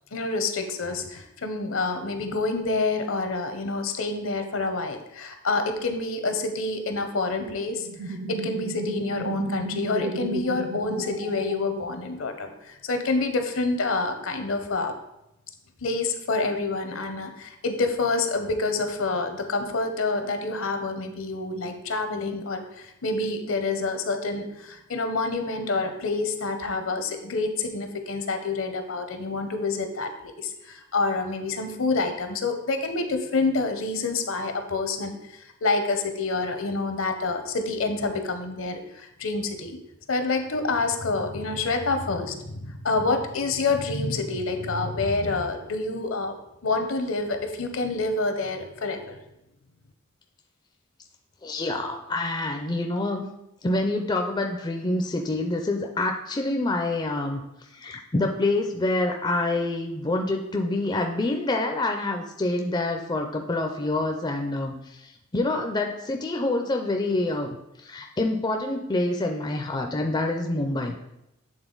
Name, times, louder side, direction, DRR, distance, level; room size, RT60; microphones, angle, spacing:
voice 1, 0.1-14.9 15.8-39.8 40.1-46.3 46.6-49.2, left 3 dB, 70° left, 6 dB, 0.8 m, -27 dB
sound 1, 7.7-12.2, right 2 dB, 45° right, 0.4 m, -34 dB
voice 2, 51.4-53.2 53.6-57.4 57.7-64.7 65.0-67.5 67.8-71.0, left 2 dB, 20° left, 3 dB, 0.4 m, -26 dB
8.0 x 3.7 x 3.8 m, 0.87 s
head